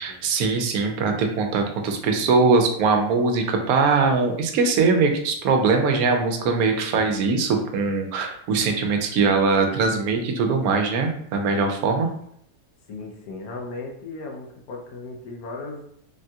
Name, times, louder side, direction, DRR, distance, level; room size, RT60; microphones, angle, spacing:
voice 1, 0.0-12.1, right 4 dB, 85° right, 4 dB, 1.1 m, -21 dB
voice 2, 12.9-15.8, left 3 dB, 90° left, 0 dB, 1.2 m, -36 dB
3.5 x 2.3 x 2.7 m, 0.68 s
omnidirectional pair, 1.5 m